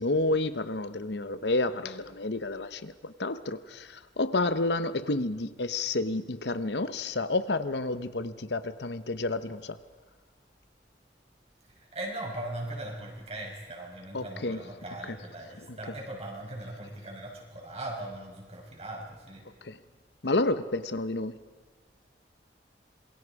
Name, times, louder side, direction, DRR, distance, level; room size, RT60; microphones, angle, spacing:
voice 1, 0.0-9.8 14.1-14.6 19.6-19.8 20.2-21.4, left 2 dB, 70° left, 12 dB, 1.0 m, -30 dB
voice 2, 11.6-19.5, right 1 dB, 35° right, 0 dB, 5.3 m, -39 dB
27.0 x 22.5 x 4.8 m, 1.4 s
head